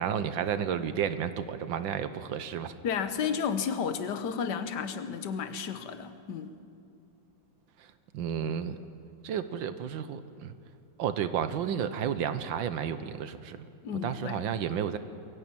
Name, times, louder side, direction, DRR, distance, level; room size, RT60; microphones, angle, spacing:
voice 1, 0.0-2.7 8.1-8.8 9.2-10.5 11.0-13.6 14.0-15.0, right 8 dB, 85° right, 11 dB, 1.6 m, -31 dB
voice 2, 2.8-6.5 13.8-14.4, left 7 dB, 65° left, 10 dB, 1.7 m, -32 dB
23.0 x 15.0 x 8.9 m, 2.4 s
omnidirectional pair, 2.1 m